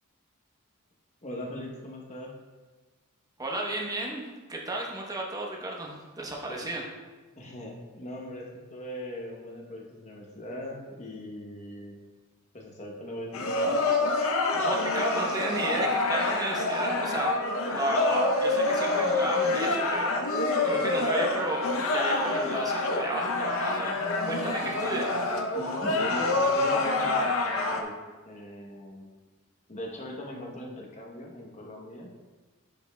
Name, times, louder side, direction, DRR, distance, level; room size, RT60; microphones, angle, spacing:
voice 1, 1.2-2.4 6.5-6.7 7.4-12.0 12.5-13.8 24.6-24.7 25.5-28.0 28.3-29.1 29.7-32.1, left 1 dB, 30° left, -1 dB, 0.9 m, -40 dB
voice 2, 3.4-6.8 14.5-17.3 17.7-21.6 21.9-25.1 25.8-26.0, right 2 dB, 15° right, -1 dB, 0.9 m, -33 dB
sound 1, 13.3-27.8, left 2 dB, 65° left, 0.7 m, -27 dB
10.5 x 5.2 x 2.2 m, 1.3 s
head